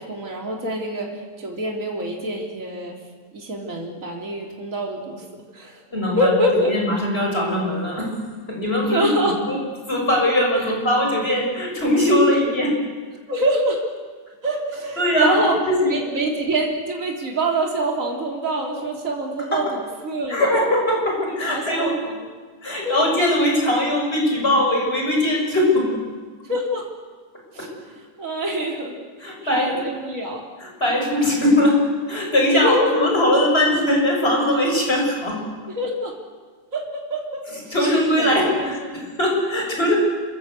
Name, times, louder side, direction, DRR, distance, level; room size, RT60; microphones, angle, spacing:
voice 1, 0.0-3.0 3.3-5.2 5.5-5.8 6.2-6.7 8.8-9.3 13.3-13.8 14.4-15.6 15.9-20.6 21.5-22.3 22.8-23.0 26.4-26.9 27.5-27.7 28.0-28.9 29.2-30.4 32.4-33.1 35.7-36.1 36.7-37.4 38.2-39.0, right 1 dB, 45° right, 0 dB, 3.8 m, -25 dB
voice 2, 5.9-6.3 6.7-8.1 8.5-9.1 9.4-9.6 9.9-12.7 15.0-16.0 19.5-19.6 20.3-22.0 22.6-26.0 27.6-27.7 29.2-29.7 30.6-31.8 32.1-35.4 37.7-40.0, left 1 dB, 35° left, 0 dB, 7.0 m, -20 dB
28.5 x 21.5 x 8.3 m, 1.5 s
omnidirectional pair, 1.9 m